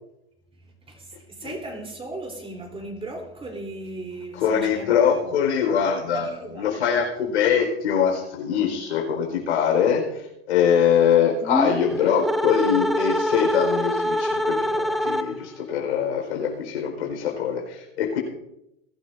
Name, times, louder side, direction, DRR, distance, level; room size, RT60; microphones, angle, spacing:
voice 1, 0.6-5.4 6.1-6.9, right 2 dB, 15° right, 3.6 m, -37 dB
voice 2, 4.3-6.3 6.6-10.0 10.5-18.2, left 7 dB, 85° left, 4.7 m, -23 dB
sound 1, 11.4-15.6, equal, ahead, 0.7 m, -25 dB
21.0 x 12.0 x 2.7 m
hypercardioid pair, 105°, 33 cm